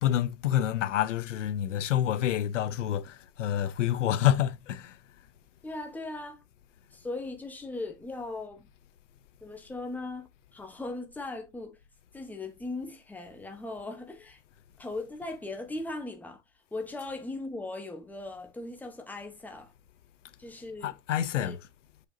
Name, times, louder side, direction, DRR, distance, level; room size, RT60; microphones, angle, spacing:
voice 1, 0.0-4.9 20.8-21.6, left 11 dB, 80° left, 0.9 m, -27 dB
voice 2, 5.6-6.4 6.9-8.7 9.4-11.8 12.1-14.4 14.8-16.4 16.7-19.7 20.4-20.9 21.4-21.6, left 2 dB, 5° left, 1.3 m, -38 dB
6.5 x 5.2 x 2.9 m
hypercardioid pair, 130°, 36 cm